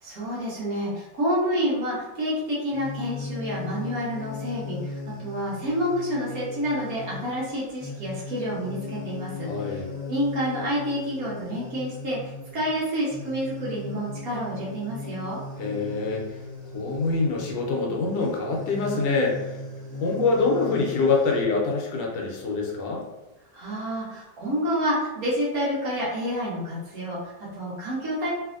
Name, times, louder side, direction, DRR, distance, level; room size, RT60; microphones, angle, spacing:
voice 1, 0.0-9.8 10.1-12.2 12.5-15.4 23.5-28.3, equal, 60° right, -7 dB, 1.2 m, -29 dB
sound 1, 2.7-21.4, left 3 dB, 15° right, 0.4 m, -38 dB
voice 2, 9.4-9.9 15.6-16.4 16.7-19.6 20.0-23.0, left 3 dB, 75° left, -1 dB, 1.2 m, -25 dB
3.3 x 2.6 x 2.4 m, 1.0 s
omnidirectional pair, 2.0 m